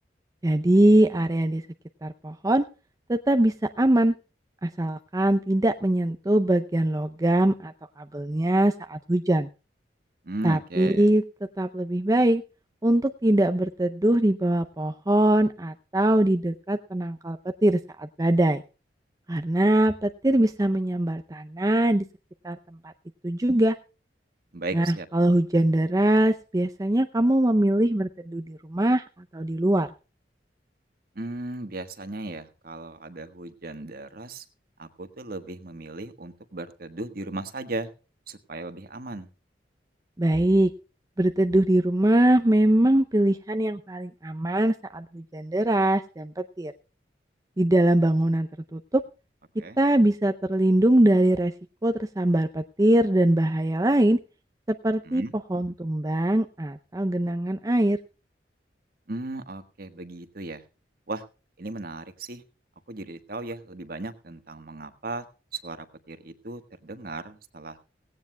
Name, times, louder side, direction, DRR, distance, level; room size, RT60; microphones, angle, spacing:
voice 1, 0.4-1.6 2.0-2.6 3.1-4.1 4.6-7.7 8.0-9.5 10.4-11.2 11.6-12.4 12.8-18.6 19.3-22.0 22.4-22.6 22.8-22.9 23.2-23.8 24.7-24.9 25.1-29.0 29.3-29.9 40.2-40.7 41.2-46.7 47.6-49.0 49.8-51.5 51.8-54.2 54.7-55.2 55.5-58.0, right 1 dB, 20° right, 7 dB, 0.5 m, -22 dB
voice 2, 10.2-11.1 24.5-25.1 31.1-34.4 34.8-37.9 38.3-39.3 49.6-49.8 55.0-55.3 59.1-60.6 61.1-61.2 61.6-62.4 62.9-65.3 65.5-67.9, right 2 dB, 55° right, 9 dB, 1.4 m, -36 dB
17.5 x 17.0 x 2.2 m, 0.34 s
head